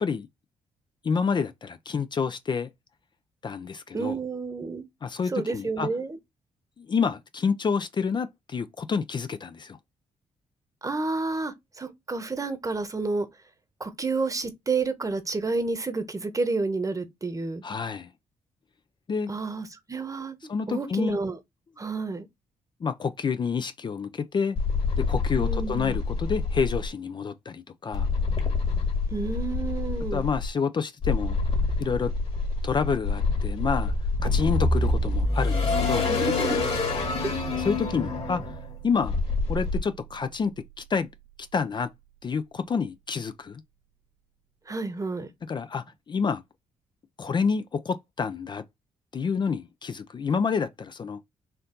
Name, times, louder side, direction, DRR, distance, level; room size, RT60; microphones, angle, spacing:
voice 1, 1.0-2.7 3.4-4.2 5.0-5.9 6.8-9.8 17.6-18.1 19.1-19.3 20.5-21.2 22.8-24.6 25.0-28.1 30.1-31.4 31.8-32.1 32.6-33.9 34.2-36.1 37.6-38.6 38.8-39.2 39.5-41.1 41.5-41.9 42.2-43.6 45.5-46.4 47.2-48.6 49.1-51.2, left 5 dB, 40° left, 0.4 m, -28 dB
voice 2, 3.9-4.9 5.3-6.2 10.8-13.3 13.8-17.6 19.3-21.4 21.8-22.3 25.4-26.0 29.1-30.3 36.1-36.6 37.2-37.3 44.7-45.3, right 3 dB, 25° right, 1.0 m, -30 dB
sound 1, 24.6-26.9 27.9-30.5 31.0-39.8, left 4 dB, 55° left, 2.1 m, -27 dB
sound 2, 34.2-40.5, equal, 80° right, 1.6 m, -31 dB
4.4 x 2.6 x 3.8 m
cardioid pair, 65°, 12 cm